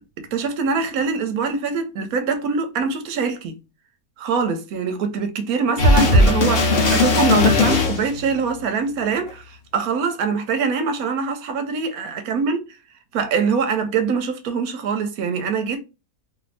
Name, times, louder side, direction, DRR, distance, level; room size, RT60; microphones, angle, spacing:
voice 1, 0.3-3.6 4.2-12.6 13.1-15.8, right 5 dB, 75° right, 1.0 m, -23 dB
sound 1, 5.8-8.3 9.3-9.4, left 2 dB, 50° left, 0.8 m, -17 dB
2.7 x 2.6 x 3.2 m
omnidirectional pair, 1.6 m